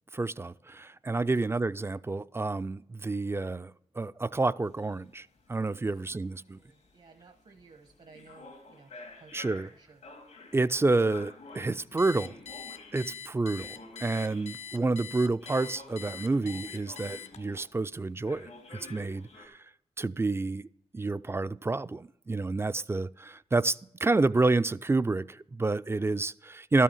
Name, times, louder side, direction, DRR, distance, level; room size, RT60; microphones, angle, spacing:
voice 1, 0.1-6.6 9.3-9.7 10.5-12.3 12.9-19.6 20.0-20.7 20.9-26.8, right 3 dB, 20° right, 0.3 m, -29 dB
sound 1, 4.7-14.9 15.4-17.9 18.2-19.5, left 3 dB, 85° left, 1.9 m, -50 dB
voice 2, 5.9-10.0, right 4 dB, 60° right, 1.0 m, -57 dB
Alarm, 12.0-17.6, left 8 dB, 65° left, 0.6 m, -43 dB
12.5 x 5.6 x 7.1 m
cardioid pair, 45°, 12 cm